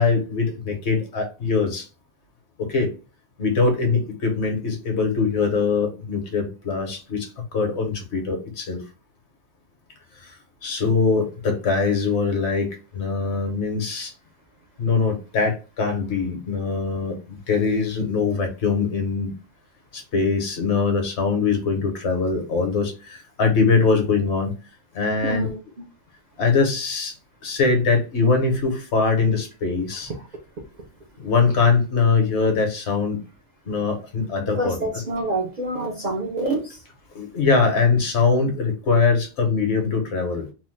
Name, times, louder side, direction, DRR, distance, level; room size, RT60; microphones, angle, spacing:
voice 1, 0.0-1.9 2.6-2.9 3.4-8.8 10.2-10.3 10.6-14.1 14.8-19.3 19.9-24.5 24.9-25.5 26.4-27.1 27.4-30.1 31.2-33.2 33.7-34.8 37.1-40.5, left 4 dB, 70° left, 1.1 m, -22 dB
voice 2, 25.2-25.9 34.5-36.8, right 2 dB, 50° right, 0.5 m, -27 dB
3.0 x 2.0 x 3.1 m
omnidirectional pair, 1.2 m